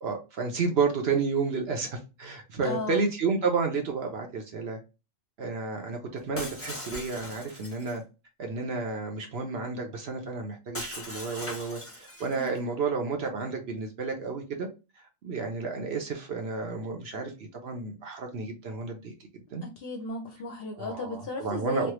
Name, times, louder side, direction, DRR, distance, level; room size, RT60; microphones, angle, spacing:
voice 1, 0.0-4.8 5.4-8.0 8.4-14.7 15.2-19.6 20.8-21.9, right 4 dB, 60° right, 0.8 m, -31 dB
voice 2, 2.6-3.1 12.3-12.5 19.6-21.9, left 3 dB, 60° left, 0.7 m, -35 dB
Shatter, 6.4-8.0 10.7-12.6, left 1 dB, 20° left, 0.4 m, -40 dB
3.2 x 2.1 x 3.0 m
omnidirectional pair, 1.4 m